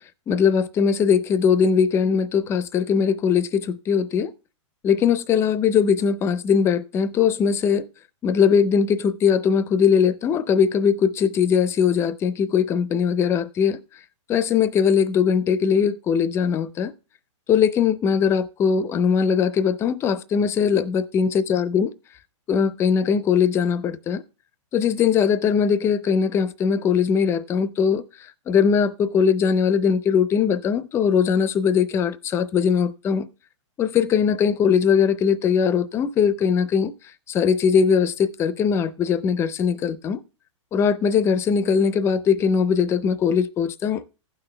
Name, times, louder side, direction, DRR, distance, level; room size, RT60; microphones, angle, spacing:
voice 1, 0.3-4.3 4.8-7.9 8.2-13.8 14.3-16.9 17.5-21.9 22.5-24.2 24.7-28.0 28.5-33.3 33.8-36.9 37.3-40.2 40.7-44.0, left 7 dB, 15° left, 0.4 m, -20 dB
15.5 x 6.0 x 3.2 m
hypercardioid pair, 140°, 16 cm